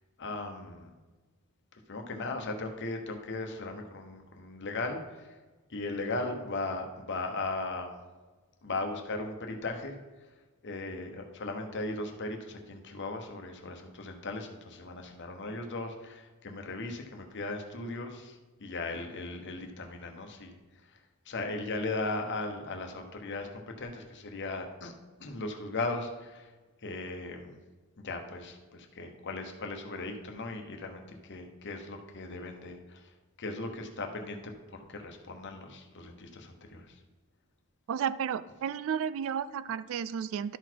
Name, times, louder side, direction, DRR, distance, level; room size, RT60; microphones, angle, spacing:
voice 1, 0.2-0.9 1.9-5.4 5.7-8.0 8.6-10.0 10.6-20.6 20.9-21.0 21.3-24.9 25.2-26.5 26.8-27.6 28.0-33.1 33.4-37.0, left 2 dB, 55° left, 4 dB, 1.0 m, -37 dB
voice 2, 37.9-40.6, right 7 dB, 65° right, 16 dB, 0.3 m, -32 dB
12.0 x 4.1 x 4.6 m, 1.2 s
head